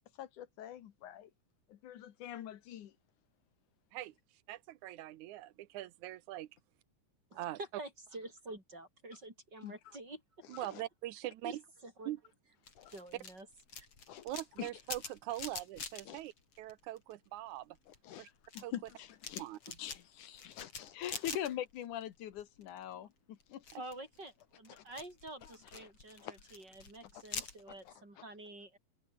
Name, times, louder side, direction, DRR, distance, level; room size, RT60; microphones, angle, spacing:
voice 1, 0.2-1.3 1.7-2.9 9.6-9.7 10.7-10.8 12.8-12.9 14.1-14.3 14.6-14.7 16.1-16.2 18.0-19.4 19.8-23.6 24.8-24.9 25.7-25.9 26.2-26.3 27.4-27.5 27.9-28.0, left 11 dB, 85° left, 3.0 m, -44 dB
voice 2, 4.5-6.5 7.4-7.6 10.5-11.5 12.1-12.2 14.2-17.8 18.2-18.3 18.6-18.7 19.4-19.8, right 15 dB, 80° right, 2.2 m, -42 dB
voice 3, 7.3-10.2 11.4-11.6 11.8-12.1 12.9-13.5 13.7-13.9 22.9-23.1 23.8-28.8, right 2 dB, 35° right, 7.5 m, -48 dB
sound 1, 12.6-17.3 17.6-22.1 22.3-22.9 23.4-27.9, left 5 dB, 50° left, 4.7 m, -47 dB
open air
omnidirectional pair, 3.4 m